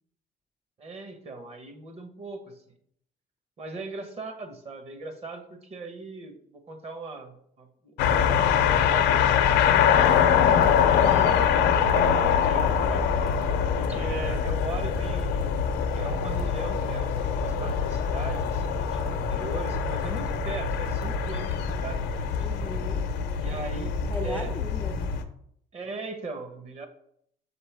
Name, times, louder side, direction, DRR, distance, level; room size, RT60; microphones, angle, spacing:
voice 1, 0.8-2.6 3.6-10.5 11.5-13.1 13.8-15.7 16.0-22.4 23.4-24.0 24.2-24.5 25.7-26.9, right 3 dB, 40° right, 6 dB, 1.1 m, -39 dB
sound 1, 8.0-25.2, left 8 dB, 85° left, 0.6 m, -24 dB
sound 2, 10.3-25.2, right 2 dB, 70° right, 1.1 m, -36 dB
voice 2, 10.9-11.5 22.4-23.1 23.5-23.6 24.1-25.1, left 1 dB, 10° left, 6 dB, 0.4 m, -38 dB
7.0 x 4.3 x 3.4 m, 0.70 s
cardioid pair, 110°, 17 cm